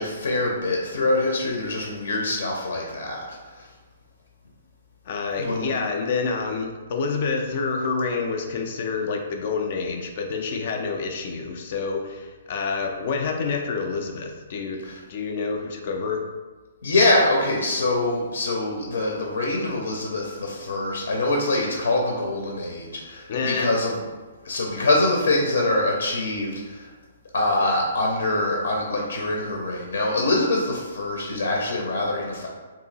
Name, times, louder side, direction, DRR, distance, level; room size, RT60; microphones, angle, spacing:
voice 1, 0.0-3.7 5.4-5.7 14.8-15.0 16.8-24.0 24.4-26.9 27.3-32.5, left 2 dB, 70° left, 0 dB, 0.6 m, -24 dB
voice 2, 5.1-14.8 15.1-16.2 23.3-23.7, left 4 dB, 35° left, 3 dB, 0.3 m, -28 dB
2.9 x 2.7 x 4.0 m, 1.3 s
hypercardioid pair, 180°, 0 cm